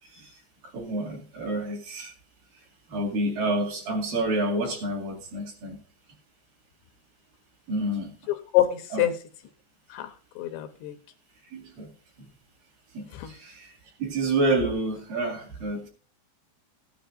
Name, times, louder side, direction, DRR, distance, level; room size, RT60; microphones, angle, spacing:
voice 1, 0.0-2.1 2.5-5.8 7.7-8.1 8.9-9.0 11.4-11.9 12.2-12.3 12.9-15.9, right 2 dB, 55° right, 3.5 m, -29 dB
voice 2, 8.3-9.1 9.9-11.0 13.1-13.3, left 12 dB, 80° left, 2.7 m, -26 dB
16.0 x 10.0 x 2.5 m
omnidirectional pair, 5.3 m